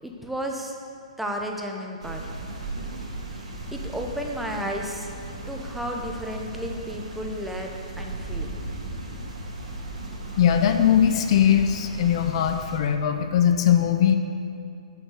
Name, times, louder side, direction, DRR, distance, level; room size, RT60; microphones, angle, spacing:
voice 1, 0.0-0.7 1.2-2.3 3.7-5.1 5.5-8.5, equal, 5° right, 0 dB, 1.0 m, -33 dB
sound 1, 2.0-12.8, right 2 dB, 70° right, 2.5 m, -36 dB
voice 2, 10.4-14.2, left 9 dB, 50° left, 7 dB, 0.7 m, -20 dB
7.9 x 7.2 x 6.6 m, 2.4 s
hypercardioid pair, 130°, 4 cm